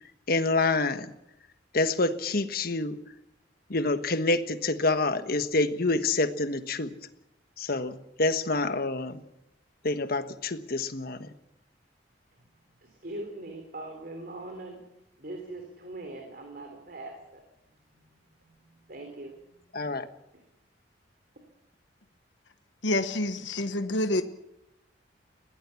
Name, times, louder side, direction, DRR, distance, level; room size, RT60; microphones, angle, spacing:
voice 1, 0.3-1.1 1.7-3.0 3.7-6.9 7.6-9.2 9.8-11.3 19.7-20.1, left 3 dB, 55° left, 10 dB, 1.4 m, -27 dB
voice 2, 12.8-17.4 17.9-19.6 20.3-20.4, right 2 dB, 55° right, 4 dB, 3.6 m, -42 dB
voice 3, 22.8-24.2, left 1 dB, 85° left, 9 dB, 1.2 m, -27 dB
22.0 x 17.0 x 7.1 m, 0.83 s
head